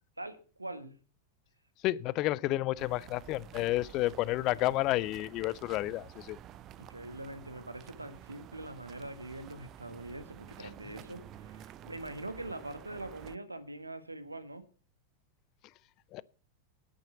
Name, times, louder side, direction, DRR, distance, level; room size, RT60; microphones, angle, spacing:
voice 1, 0.2-1.0 6.8-14.6, right 2 dB, 85° right, 1.5 m, -43 dB
voice 2, 1.8-6.4 10.6-10.7 16.1-16.2, left 17 dB, 40° left, 0.5 m, -31 dB
sound 1, 2.8-13.4, right 11 dB, 35° right, 0.6 m, -51 dB
10.0 x 9.0 x 6.9 m
figure-of-eight pair, 90°, 0 cm